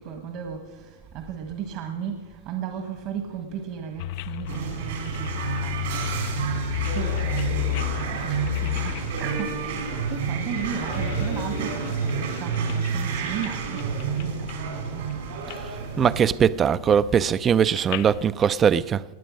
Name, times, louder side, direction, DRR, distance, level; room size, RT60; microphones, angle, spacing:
voice 1, 0.0-6.1 6.9-15.2, right 8 dB, 50° right, 1.4 m, -35 dB
sound 1, 4.0-11.4 11.8-12.9 13.3-13.5 13.8-14.7 15.0-15.6 15.9-18.3, left 16 dB, 55° left, 0.4 m, -33 dB
sound 2, 4.5-16.3, right 6 dB, 75° right, 3.5 m, -30 dB
Vehicle / Engine, 5.4-15.1, left 7 dB, 80° left, 2.7 m, -43 dB
voice 2, 16.0-19.0, right 8 dB, 25° right, 0.4 m, -20 dB
18.5 x 8.2 x 6.3 m
hypercardioid pair, 115°, 0 cm